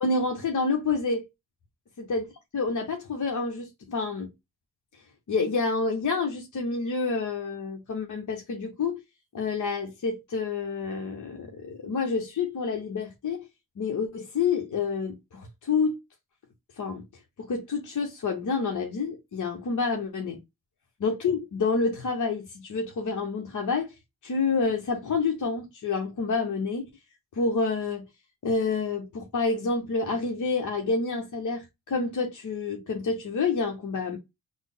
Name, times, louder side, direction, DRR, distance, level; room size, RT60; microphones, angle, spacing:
voice 1, 0.0-1.3 2.1-2.2 2.5-4.3 5.3-9.0 9.3-13.5 13.8-16.0 16.8-17.0 17.4-20.4 21.0-23.9 24.2-26.9 27.3-28.0 28.4-34.2, left 4 dB, 50° left, 0.9 m, -28 dB
3.5 x 2.0 x 3.6 m
cardioid pair, 55°, 39 cm